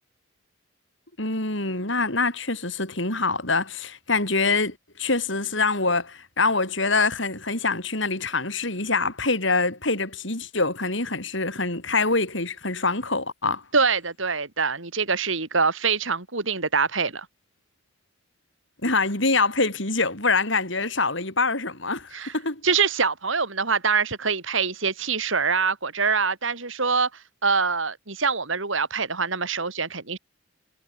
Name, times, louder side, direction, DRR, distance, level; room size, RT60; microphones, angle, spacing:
voice 1, 1.2-13.6 18.8-22.6, left 3 dB, 65° left, 6.3 m, -25 dB
voice 2, 13.7-17.3 22.1-22.3 22.6-27.1 27.4-30.2, right 5 dB, 75° right, 3.4 m, -24 dB
head